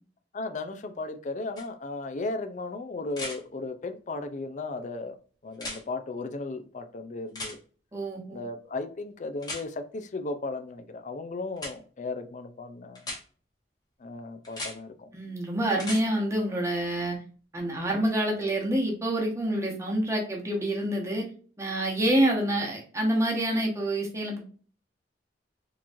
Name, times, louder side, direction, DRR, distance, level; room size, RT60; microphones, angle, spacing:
voice 1, 0.3-5.2 5.4-7.6 8.3-13.1 14.0-15.1, left 3 dB, 45° left, 0.4 m, -35 dB
sound 1, 1.6-1.7 3.1-3.4 5.5-5.8 7.3-7.6 9.4-9.6 11.6-11.7 13.0-13.2 14.4-14.7 15.7-16.0 18.1-18.2, left 2 dB, 20° left, 1.1 m, -36 dB
voice 2, 7.9-8.4 15.1-17.2 17.5-21.2 21.6-24.4, right 1 dB, 15° right, 1.0 m, -27 dB
3.8 x 3.0 x 2.6 m
head